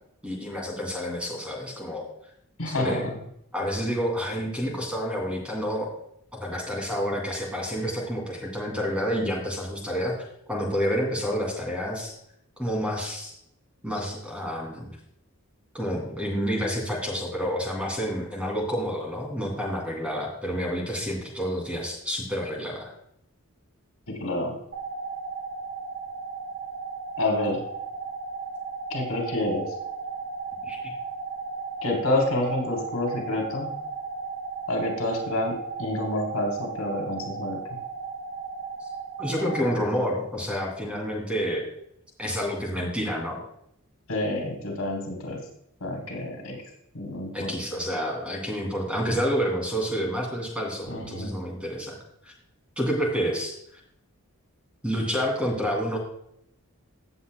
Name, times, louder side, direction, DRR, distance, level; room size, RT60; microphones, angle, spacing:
voice 1, 0.2-2.1 2.6-3.0 3.5-5.9 6.4-10.2 10.5-12.1 12.6-13.3 13.8-14.9 15.7-22.9 30.6-30.8 39.2-41.6 42.2-43.4 47.3-52.0 52.2-52.3 52.8-53.8 54.8-56.0, equal, 5° right, -1 dB, 2.7 m, -29 dB
voice 2, 2.6-3.1 24.1-24.6 27.2-27.6 28.9-29.7 31.8-33.7 34.7-35.5 35.8-37.6 44.1-45.4 45.8-46.6 46.9-47.5 50.9-51.4, left 1 dB, 80° left, 1 dB, 3.5 m, -28 dB
sound 1, 24.7-39.7, right 4 dB, 50° right, 2.6 m, -35 dB
16.5 x 7.9 x 2.2 m, 0.73 s
head